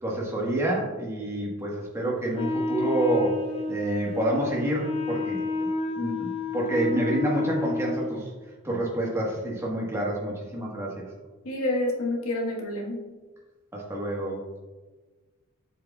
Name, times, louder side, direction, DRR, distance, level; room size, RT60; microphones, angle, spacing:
voice 1, 0.0-3.4 3.7-5.7 6.0-8.3 8.6-11.0 13.7-14.4, right 1 dB, 10° right, -3 dB, 1.4 m, -28 dB
Wind instrument woodwind instrument, 2.3-8.2, left 2 dB, 30° left, 0.6 m, -30 dB
voice 2, 11.4-13.0, left 1 dB, 80° left, -1 dB, 1.5 m, -28 dB
7.5 x 6.5 x 2.4 m, 1.3 s
head